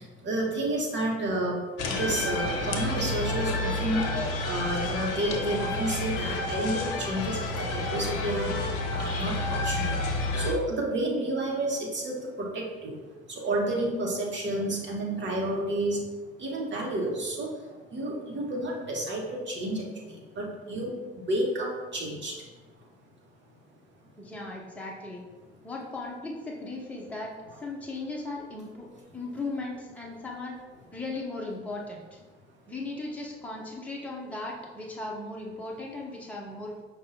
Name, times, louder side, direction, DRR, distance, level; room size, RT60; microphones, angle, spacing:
voice 1, 0.2-4.1 4.4-8.6 8.9-10.0 10.4-13.0 13.4-16.0 16.4-17.5 17.9-20.9 21.3-22.3, right 1 dB, 35° right, -2 dB, 1.3 m, -30 dB
sound 1, 1.8-10.5, left 2 dB, 50° left, 0.7 m, -30 dB
voice 2, 24.2-25.2 25.6-27.3 27.6-28.9 29.1-30.6 30.9-32.2 32.7-36.8, left 2 dB, 5° left, -3 dB, 0.8 m, -37 dB
5.3 x 2.4 x 3.9 m, 1.3 s
figure-of-eight pair, 55°, 33 cm